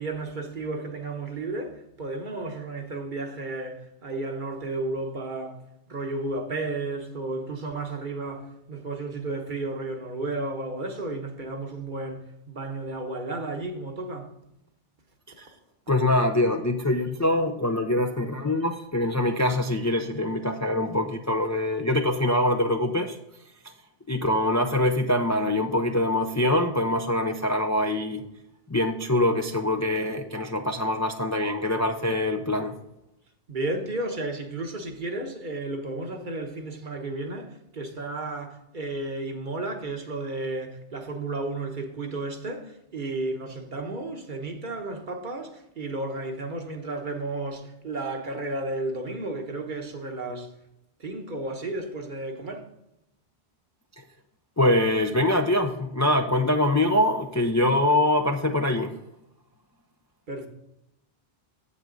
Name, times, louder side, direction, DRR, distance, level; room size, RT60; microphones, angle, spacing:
voice 1, 0.0-5.6 5.9-14.3 33.5-50.5 51.0-52.7 60.3-60.5, right 2 dB, 55° right, 1.2 m, -33 dB
voice 2, 15.9-23.2 24.1-28.2 28.7-32.8 54.6-59.0, left 1 dB, 25° left, 0.4 m, -24 dB
7.8 x 7.5 x 3.8 m
omnidirectional pair, 1.0 m